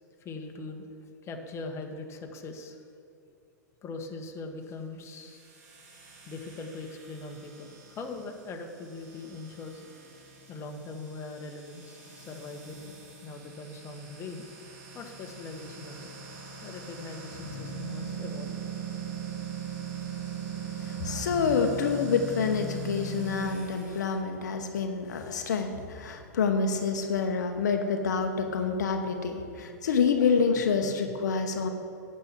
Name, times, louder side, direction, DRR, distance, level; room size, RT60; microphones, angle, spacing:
voice 1, 0.2-0.9 1.2-2.8 3.8-5.4 6.3-9.9 10.5-12.9 13.2-14.4 14.9-16.1 16.6-18.6 30.8-31.0, left 3 dB, 30° left, 3 dB, 1.4 m, -41 dB
sound 1, 5.0-24.1, right 4 dB, 55° right, 2.9 m, -41 dB
voice 2, 20.8-31.7, left 5 dB, 70° left, 5 dB, 1.0 m, -27 dB
9.8 x 6.7 x 7.3 m, 2.8 s
hypercardioid pair, 100°, 10 cm